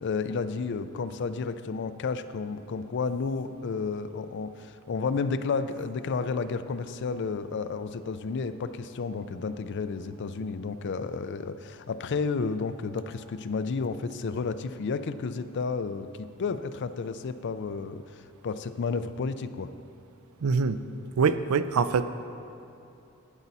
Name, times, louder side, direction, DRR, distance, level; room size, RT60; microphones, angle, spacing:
voice 1, 0.0-19.7, left 4 dB, 55° left, 12 dB, 0.4 m, -32 dB
voice 2, 20.4-20.8 21.2-22.1, right 5 dB, 85° right, 12 dB, 0.4 m, -24 dB
12.0 x 8.3 x 4.1 m, 2.8 s
head